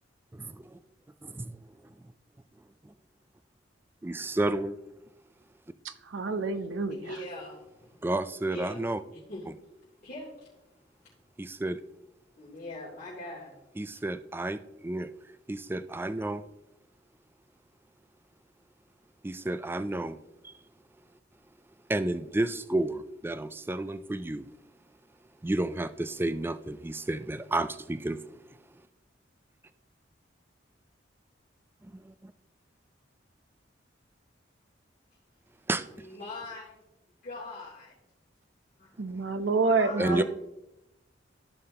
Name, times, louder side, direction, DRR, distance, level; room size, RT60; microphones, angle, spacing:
voice 1, 4.0-4.7 8.0-9.0 11.4-11.8 13.8-14.6 14.8-15.1 15.5-16.4 19.2-20.2 21.9-24.4 25.4-28.2 35.7-35.8 40.0-40.2, right 2 dB, 10° right, 0.3 m, -30 dB
voice 2, 5.8-7.0 39.0-40.2, right 4 dB, 75° right, 0.7 m, -28 dB
voice 3, 6.9-8.1 8.5-8.8 9.1-9.4 10.0-10.5 12.4-13.8 35.9-36.8 37.2-37.9 38.8-38.9 39.7-40.2, left 2 dB, 45° left, 3.3 m, -41 dB
14.5 x 5.5 x 2.9 m
head